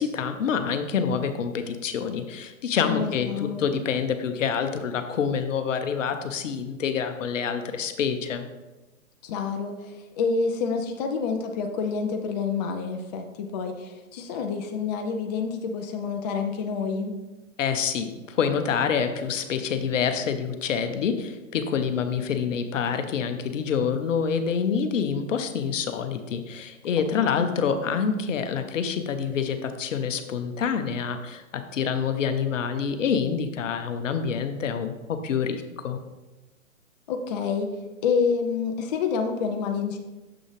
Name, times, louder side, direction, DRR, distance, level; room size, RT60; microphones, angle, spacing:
voice 1, 0.0-8.5 17.6-36.0, left 6 dB, 65° left, 8 dB, 0.9 m, -27 dB
voice 2, 2.8-3.6 9.2-17.1 27.1-27.5 37.1-37.7 38.0-40.0, left 5 dB, 30° left, 4 dB, 0.6 m, -28 dB
6.9 x 6.2 x 3.2 m, 1.1 s
hypercardioid pair, 135°, 41 cm